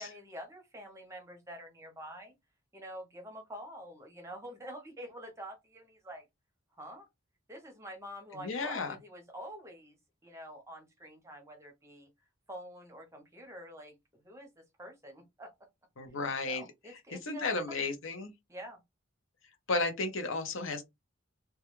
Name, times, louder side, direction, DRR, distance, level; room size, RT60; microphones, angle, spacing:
voice 1, 0.0-2.3 2.7-6.2 6.7-7.1 7.5-12.1 12.5-15.7 16.4-17.9 18.5-18.8, equal, 15° right, 0.7 m, -47 dB
voice 2, 8.4-8.9 16.0-16.6 17.3-18.3 19.7-20.8, left 3 dB, 80° left, 0.7 m, -33 dB
2.3 x 2.2 x 2.9 m
head